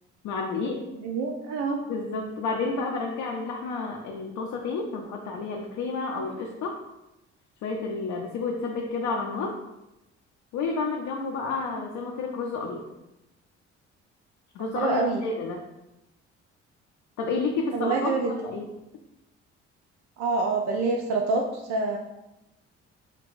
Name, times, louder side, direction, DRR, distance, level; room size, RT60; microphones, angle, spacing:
voice 1, 0.2-0.8 1.9-6.8 7.6-9.5 10.5-12.8 14.5-15.6 17.2-18.7, left 4 dB, 55° left, 0 dB, 0.5 m, -30 dB
voice 2, 0.9-1.8 14.7-15.2 17.7-18.3 20.2-22.0, right 3 dB, 50° right, 1 dB, 0.5 m, -26 dB
3.2 x 2.9 x 2.5 m, 0.93 s
hypercardioid pair, 50°, 35 cm